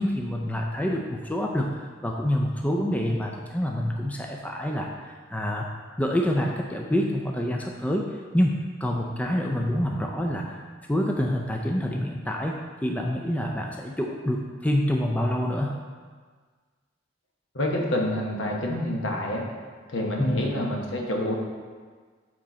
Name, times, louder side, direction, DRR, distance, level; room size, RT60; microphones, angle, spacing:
voice 1, 0.0-5.7 6.0-10.6 10.9-15.8 20.2-20.5, equal, 5° left, 0 dB, 0.4 m, -27 dB
voice 2, 17.5-19.5 19.9-21.3, left 1 dB, 70° left, 0 dB, 1.1 m, -27 dB
7.7 x 4.0 x 4.2 m, 1.5 s
head